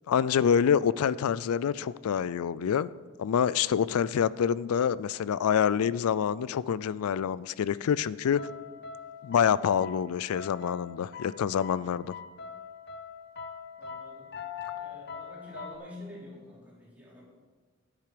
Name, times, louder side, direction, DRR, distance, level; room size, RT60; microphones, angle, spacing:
voice 1, 0.1-2.9 3.2-8.4 9.2-12.1, left 8 dB, 90° left, 19 dB, 0.3 m, -26 dB
sound 1, 8.4-15.8, left 6 dB, 50° left, 0.7 m, -43 dB
voice 2, 13.8-14.3 14.7-17.2, left 1 dB, 5° right, -7 dB, 3.3 m, -47 dB
10.5 x 8.9 x 5.0 m, 1.4 s
head